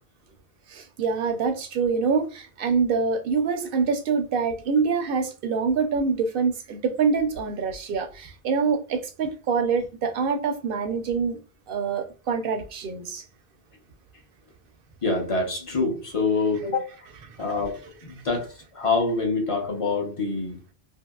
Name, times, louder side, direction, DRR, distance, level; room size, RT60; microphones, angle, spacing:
voice 1, 0.7-11.4 11.7-13.2, right 5 dB, 65° right, 0.7 m, -25 dB
voice 2, 15.0-16.9 17.4-20.6, left 3 dB, 35° left, 0.7 m, -26 dB
2.7 x 2.7 x 2.3 m
omnidirectional pair, 1.1 m